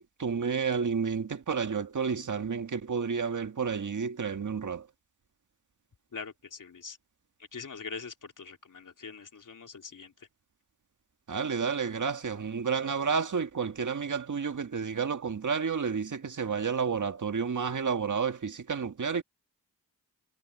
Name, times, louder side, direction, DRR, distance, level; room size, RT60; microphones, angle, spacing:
voice 1, 0.0-4.9 11.3-19.2, right 6 dB, 60° right, 1.8 m, -31 dB
voice 2, 6.1-7.0 7.5-10.3, left 5 dB, 65° left, 3.2 m, -43 dB
cardioid pair, 50°, 34 cm